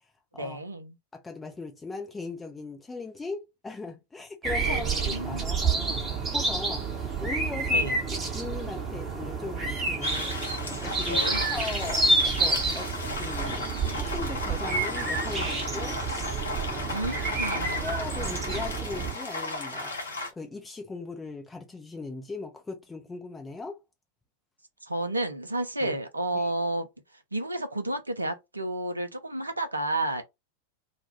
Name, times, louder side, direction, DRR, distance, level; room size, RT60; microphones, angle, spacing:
voice 1, 0.3-1.0 4.6-5.6 7.5-8.0 11.1-11.5 16.9-17.9 24.8-26.9 27.3-30.2, right 1 dB, 80° right, 0.5 m, -31 dB
voice 2, 1.1-12.9 13.2-13.7 14.0-16.0 16.7-16.9 17.8-23.8 25.8-26.0 26.3-26.4, left 3 dB, 10° left, 0.5 m, -39 dB
sound 1, 4.4-19.1, right 3 dB, 20° right, 1.0 m, -29 dB
sound 2, 10.0-20.3, left 2 dB, 70° left, 0.8 m, -35 dB
2.3 x 2.2 x 3.0 m
figure-of-eight pair, 90°, 0 cm